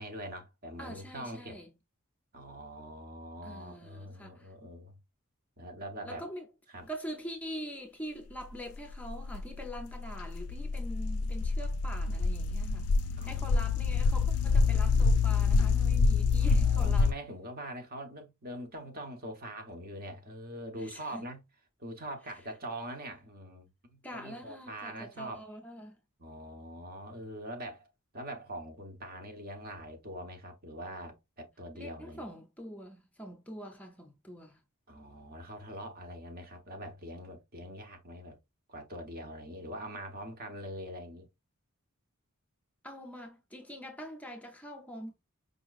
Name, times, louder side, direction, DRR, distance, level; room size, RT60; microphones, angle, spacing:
voice 1, 0.0-1.6 2.3-5.0 5.6-6.2 6.7-6.9 13.2-14.5 16.4-21.4 21.8-25.4 26.2-27.9 28.1-32.3 34.9-38.4 38.7-41.3, right 1 dB, 45° right, 1.0 m, -43 dB
voice 2, 0.8-1.7 3.4-4.5 6.0-6.5 6.9-12.9 13.2-17.1 20.7-21.3 24.0-26.0 31.7-34.6 42.8-45.1, equal, 5° left, 0.5 m, -44 dB
sound 1, 8.6-17.1, left 4 dB, 80° left, 0.3 m, -27 dB
5.0 x 2.9 x 2.4 m
head